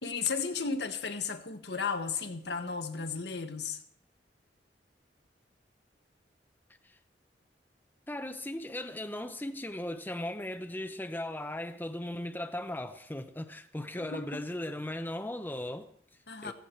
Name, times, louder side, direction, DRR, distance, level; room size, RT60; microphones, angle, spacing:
voice 1, 0.0-3.8 14.0-14.4 16.3-16.5, left 5 dB, 70° left, 1.5 m, -34 dB
voice 2, 8.1-16.5, left 1 dB, 10° left, 0.8 m, -38 dB
16.0 x 15.0 x 4.5 m
head